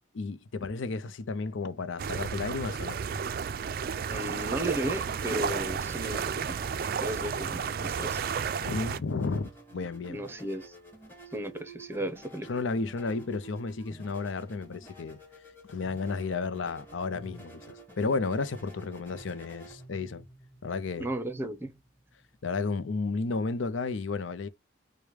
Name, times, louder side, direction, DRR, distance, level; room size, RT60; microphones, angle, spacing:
voice 1, 0.1-3.0 8.6-10.2 12.5-15.2 15.7-20.2 20.6-21.1 22.4-24.5, left 4 dB, 85° left, 0.6 m, -32 dB
sound 1, 2.0-9.0, right 6 dB, 50° right, 0.3 m, -32 dB
voice 2, 4.1-6.6 7.0-8.2 10.1-10.8 11.3-12.5 21.0-21.7, right 1 dB, 10° right, 0.7 m, -35 dB
sound 2, 4.6-22.5, right 2 dB, 10° left, 1.5 m, -51 dB
5.0 x 2.2 x 4.6 m
head